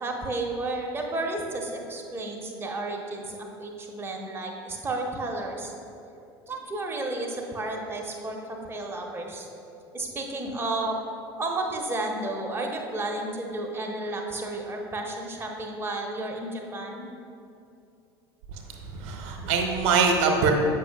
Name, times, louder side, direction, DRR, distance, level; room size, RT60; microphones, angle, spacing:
voice 1, 0.0-5.7 6.5-9.5 9.9-11.0 11.4-17.1, right 2 dB, 15° right, 1 dB, 0.7 m, -32 dB
voice 2, 18.5-20.5, right 5 dB, 50° right, 3 dB, 0.8 m, -24 dB
8.1 x 5.4 x 2.2 m, 2.7 s
figure-of-eight pair, 75°, 14 cm